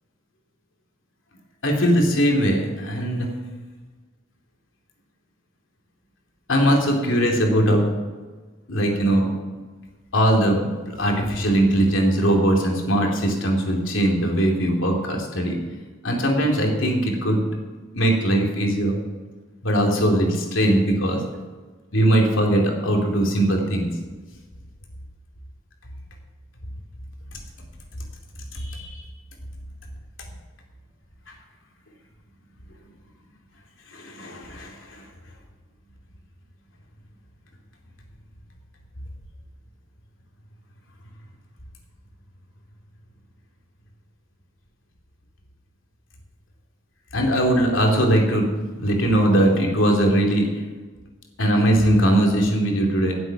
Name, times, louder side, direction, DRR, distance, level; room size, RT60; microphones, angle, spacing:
voice 1, 1.6-3.3 6.5-7.9 8.7-9.3 10.1-15.5 16.0-17.5 17.9-18.9 19.6-21.2 21.9-23.9 28.5-29.0 33.9-35.0 47.1-48.4 48.8-50.5 51.4-53.2, right 1 dB, 75° left, 1 dB, 2.7 m, -20 dB
18.0 x 7.9 x 5.9 m, 1.3 s
head